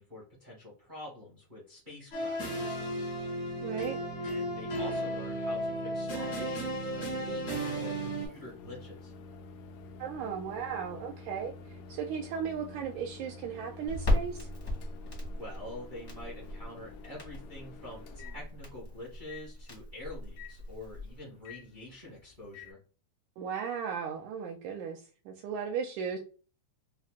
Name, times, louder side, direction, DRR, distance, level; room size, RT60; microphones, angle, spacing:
voice 1, 0.0-3.1 4.2-9.1 15.4-22.8, left 1 dB, 40° right, -5 dB, 0.6 m, -46 dB
sound 1, 2.1-8.3, right 1 dB, 60° left, 1.0 m, -34 dB
voice 2, 3.6-4.0 10.0-14.5 23.4-26.2, right 7 dB, 80° right, 2 dB, 1.9 m, -36 dB
Microwave oven, 6.2-22.7, left 4 dB, 80° left, 1.4 m, -50 dB
Crackle, 13.9-21.2, left 1 dB, 35° left, 0.5 m, -36 dB
5.7 x 2.1 x 2.4 m, 0.37 s
omnidirectional pair, 3.5 m